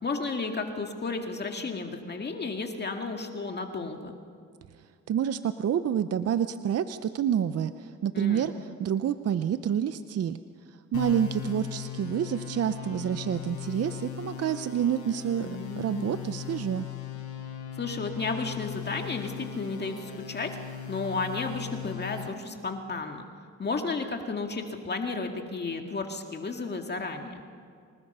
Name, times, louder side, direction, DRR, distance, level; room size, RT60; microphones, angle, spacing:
voice 1, 0.0-4.1 8.1-8.5 15.4-16.2 17.7-20.5 20.9-23.3 23.6-27.4, left 3 dB, 35° left, 4 dB, 2.1 m, -33 dB
voice 2, 5.1-8.5 8.8-10.4 10.9-15.5 15.8-16.9, right 9 dB, 55° right, 11 dB, 0.7 m, -28 dB
sound 1, 10.9-22.3, left 9 dB, 80° left, 5.4 m, -38 dB
26.5 x 19.5 x 5.6 m, 2.2 s
cardioid pair, 90°, 30 cm